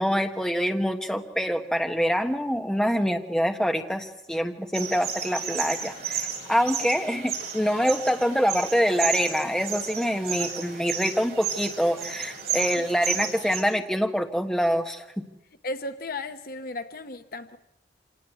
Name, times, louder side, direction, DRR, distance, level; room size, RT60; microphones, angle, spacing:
voice 1, 0.0-15.0, equal, 5° left, 1.3 m, -25 dB
sound 1, 4.7-13.6, right 7 dB, 50° right, 3.8 m, -33 dB
voice 2, 15.6-17.6, left 2 dB, 50° left, 1.0 m, -35 dB
26.0 x 18.0 x 8.1 m
head